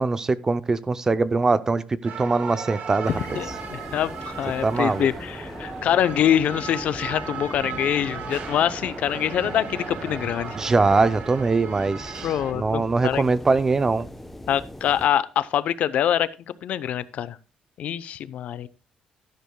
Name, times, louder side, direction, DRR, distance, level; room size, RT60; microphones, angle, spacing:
voice 1, 0.0-3.1 4.6-5.1 10.6-12.3 12.5-14.1, right 3 dB, 20° right, 0.5 m, -22 dB
sound 1, 2.0-12.5, right 6 dB, 60° right, 1.8 m, -37 dB
sound 2, 3.0-15.1, left 1 dB, 5° left, 0.8 m, -39 dB
voice 2, 3.1-10.6 12.2-13.2 14.5-16.3 16.6-17.4 17.8-18.7, left 10 dB, 60° left, 0.6 m, -25 dB
12.5 x 11.0 x 2.2 m
cardioid pair, 145°, 3 cm